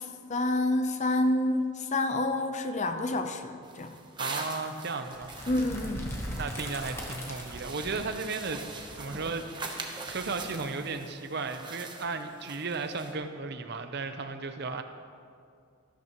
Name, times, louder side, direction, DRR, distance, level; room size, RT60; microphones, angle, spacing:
voice 1, 0.0-4.0 5.5-6.2, left 2 dB, 35° left, 7 dB, 0.6 m, -28 dB
sound 1, 3.6-13.1, right 3 dB, 20° right, 0.9 m, -43 dB
voice 2, 4.2-5.3 6.4-8.6 8.9-9.7 10.1-14.8, right 4 dB, 50° right, 8 dB, 0.6 m, -35 dB
sound 2, 5.1-10.9, equal, 10° left, 1.1 m, -40 dB
13.5 x 12.0 x 3.0 m, 2.3 s
head